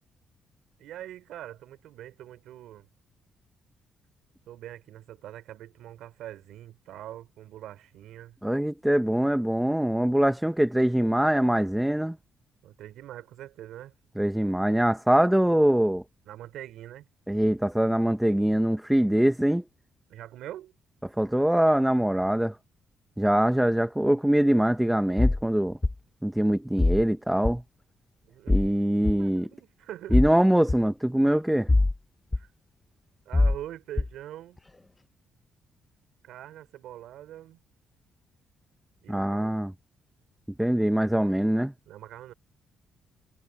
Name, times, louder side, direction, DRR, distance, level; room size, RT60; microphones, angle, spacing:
voice 1, 0.8-2.9 4.5-8.4 12.6-13.9 16.3-17.1 20.1-20.7 28.2-28.7 29.2-30.4 32.4-32.5 33.3-34.6 36.2-37.6 39.0-39.6 41.9-42.3, right 12 dB, 85° right, 4.1 m, -43 dB
voice 2, 8.4-12.2 14.2-16.0 17.3-19.6 21.2-22.5 23.2-25.8 26.2-27.6 28.5-29.5 30.1-31.7 39.1-39.7 40.6-41.7, right 1 dB, 5° right, 1.3 m, -23 dB
sound 1, 25.2-25.4 25.8-25.9 26.8-27.0 27.4-27.6 28.5-28.7 29.0-29.1 30.1-30.3 30.7-30.8 31.7-32.0 32.3-32.4 33.3-33.6 34.0-34.1, left 2 dB, 15° left, 0.8 m, -22 dB
cardioid pair, 90°, 0 cm